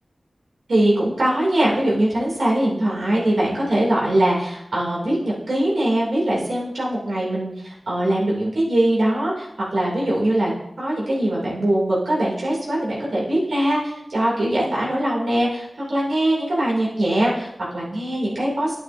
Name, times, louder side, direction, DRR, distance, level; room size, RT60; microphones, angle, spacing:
voice 1, 0.7-10.5 10.8-18.7, right 1 dB, 85° right, -5 dB, 2.9 m, -22 dB
9.6 x 9.0 x 2.7 m, 0.80 s
wide cardioid pair, 80°, 0 cm